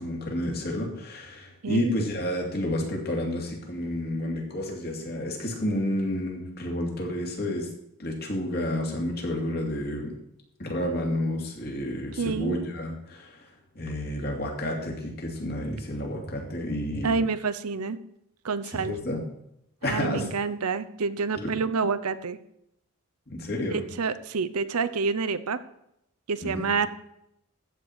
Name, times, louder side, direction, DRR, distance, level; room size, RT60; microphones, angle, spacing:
voice 1, 0.0-7.7 8.0-10.2 10.6-13.4 13.7-17.2 18.8-19.2 19.8-20.3 21.3-21.5 23.3-23.8 26.4-26.7, left 1 dB, 45° left, 0 dB, 2.8 m, -30 dB
voice 2, 12.2-12.6 17.0-18.0 18.4-19.0 19.8-22.4 23.7-25.6 26.3-26.9, right 4 dB, 90° right, 12 dB, 0.8 m, -28 dB
14.5 x 4.8 x 8.1 m, 0.80 s
head